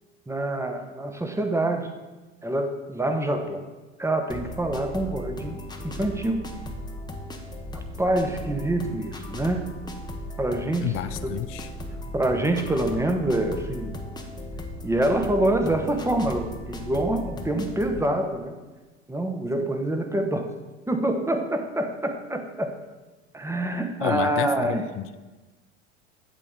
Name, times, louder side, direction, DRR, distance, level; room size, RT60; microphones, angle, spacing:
voice 1, 0.3-1.9 2.4-3.6 4.0-6.4 8.0-9.7 10.4-11.4 12.1-14.0 14.8-18.5 19.1-20.5 20.9-22.7 23.3-24.9, right 1 dB, 10° right, 5 dB, 1.0 m, -26 dB
sound 1, 4.3-18.0, left 1 dB, 10° left, 1.0 m, -37 dB
voice 2, 10.8-11.7 24.0-25.2, left 13 dB, 40° left, 12 dB, 0.5 m, -31 dB
8.4 x 8.2 x 3.7 m, 1.2 s
hypercardioid pair, 85°, 35 cm